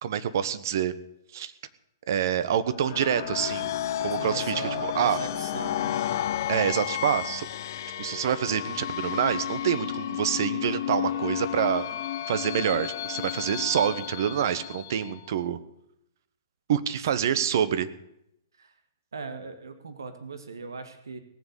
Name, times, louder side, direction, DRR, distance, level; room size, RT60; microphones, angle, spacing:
voice 1, 0.0-0.9 1.3-1.5 2.1-3.7 4.0-5.2 6.5-7.5 8.0-11.8 12.3-15.6 16.7-17.9, right 9 dB, 55° right, 14 dB, 1.3 m, -26 dB
sound 1, 2.7-15.2, left 11 dB, 55° left, 0.9 m, -32 dB
voice 2, 4.2-6.0 17.2-17.9 18.6-18.8 19.1-21.2, right 4 dB, 85° right, 8 dB, 1.8 m, -39 dB
18.5 x 7.4 x 8.3 m, 0.79 s
hypercardioid pair, 135°, 2 cm